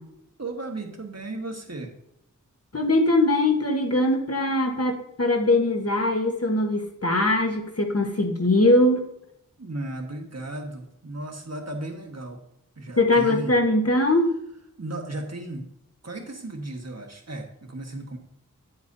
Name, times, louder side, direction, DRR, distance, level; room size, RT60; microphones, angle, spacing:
voice 1, 0.4-1.9 9.6-12.4 12.8-13.6 14.8-15.7 16.0-18.2, right 2 dB, 50° right, 3 dB, 1.5 m, -35 dB
voice 2, 2.7-9.0 13.0-14.3, left 1 dB, 45° left, 3 dB, 1.3 m, -21 dB
9.6 x 8.0 x 2.7 m, 0.78 s
wide cardioid pair, 55°, 32 cm